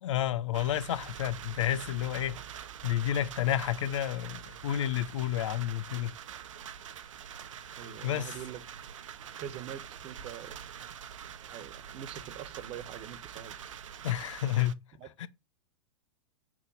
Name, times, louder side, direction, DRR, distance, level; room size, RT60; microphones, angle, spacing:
voice 1, 0.0-2.4 2.8-6.1 8.0-8.3 14.0-14.8 15.2-15.3, left 12 dB, 65° left, 1.1 m, -30 dB
sound 1, 0.5-14.7, right 9 dB, 70° right, 0.9 m, -45 dB
voice 2, 7.7-8.6 9.4-10.5 11.5-13.5 15.0-15.3, right 10 dB, 40° right, 1.4 m, -44 dB
8.4 x 4.6 x 7.3 m
hypercardioid pair, 105°, 17 cm